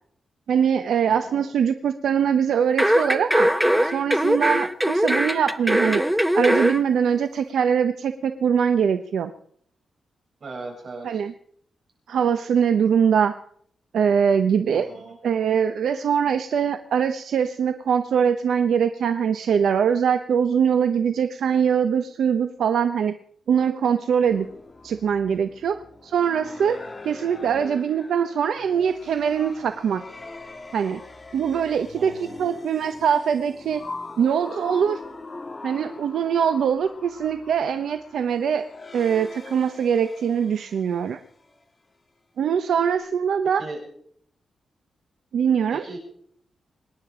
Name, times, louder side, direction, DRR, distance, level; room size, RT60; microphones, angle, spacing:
voice 1, 0.5-3.5 3.8-6.0 6.3-9.3 11.0-11.3 12.1-13.4 13.9-14.9 15.2-23.2 23.5-24.5 24.8-30.0 30.7-31.0 31.3-32.1 32.4-33.8 34.2-35.0 35.6-38.7 38.9-41.2 42.4-43.6 45.3-45.8, right 7 dB, 85° right, 9 dB, 0.8 m, -22 dB
voice 2, 1.1-1.5 10.4-11.2 14.7-15.2 32.0-32.4 43.6-43.8 45.7-46.0, right 3 dB, 50° right, 1 dB, 7.2 m, -38 dB
sound 1, 2.8-6.8 7.1-7.2, equal, 5° right, 0.8 m, -21 dB
sound 2, 24.3-41.6, left 3 dB, 25° left, 2.0 m, -41 dB
25.5 x 10.5 x 5.0 m, 0.65 s
wide cardioid pair, 120°, 0 cm